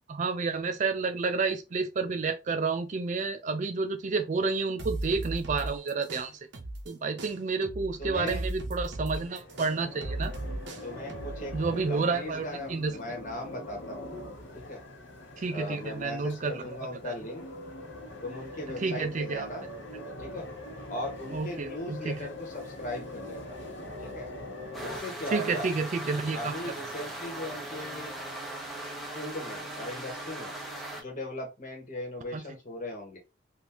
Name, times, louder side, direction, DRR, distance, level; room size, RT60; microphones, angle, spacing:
voice 1, 0.1-6.4 6.9-10.3 11.5-13.0 15.4-16.8 17.0-17.1 18.8-19.5 21.3-22.3 25.3-26.5 32.3-32.4, right 4 dB, 40° right, 0.4 m, -30 dB
sound 1, 4.8-6.9 7.2-11.7, right 2 dB, 60° right, 0.7 m, -36 dB
voice 2, 8.0-8.4 10.8-11.5 11.9-14.2 14.5-14.8 15.5-17.4 18.2-19.6 20.2-20.5 20.9-23.5 24.0-24.3 24.8-25.7 26.3-28.1 29.1-30.5 31.0-33.2, left 1 dB, 40° left, 1.3 m, -38 dB
sound 2, 9.2-25.0, left 1 dB, 65° left, 1.2 m, -43 dB
sound 3, 24.7-31.0, right 1 dB, ahead, 0.7 m, -39 dB
3.6 x 2.5 x 2.8 m
head